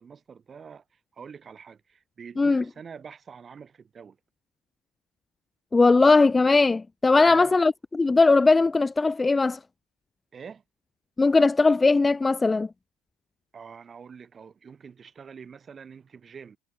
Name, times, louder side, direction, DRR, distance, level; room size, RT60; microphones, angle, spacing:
voice 1, 0.0-4.2 7.2-7.6 10.3-10.6 13.5-16.6, right 6 dB, 30° right, 6.8 m, -45 dB
voice 2, 5.7-9.6 11.2-12.7, left 3 dB, 20° left, 0.3 m, -19 dB
figure-of-eight pair, 65°, 0 cm